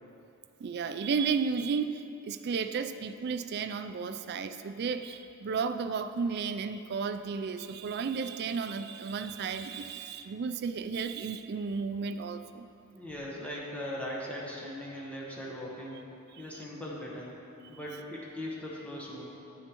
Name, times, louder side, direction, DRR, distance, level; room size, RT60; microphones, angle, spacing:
voice 1, 0.6-12.7 16.3-16.5, right 5 dB, 50° right, 10 dB, 0.3 m, -33 dB
voice 2, 12.9-16.0 16.4-17.3 17.7-19.3, left 1 dB, 5° left, -5 dB, 1.1 m, -39 dB
9.2 x 8.7 x 3.0 m, 2.6 s
head